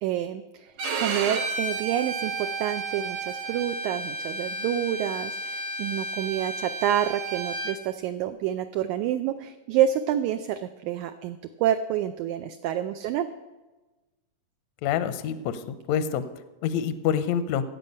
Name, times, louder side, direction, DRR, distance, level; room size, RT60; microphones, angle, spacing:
voice 1, 0.0-13.3, right 10 dB, 80° right, 8 dB, 1.8 m, -28 dB
Bowed string instrument, 0.8-7.8, right 3 dB, 60° right, 2.0 m, -32 dB
voice 2, 14.8-16.2 16.6-17.6, left 8 dB, 75° left, 11 dB, 1.6 m, -26 dB
17.0 x 7.6 x 5.3 m, 1.1 s
omnidirectional pair, 3.8 m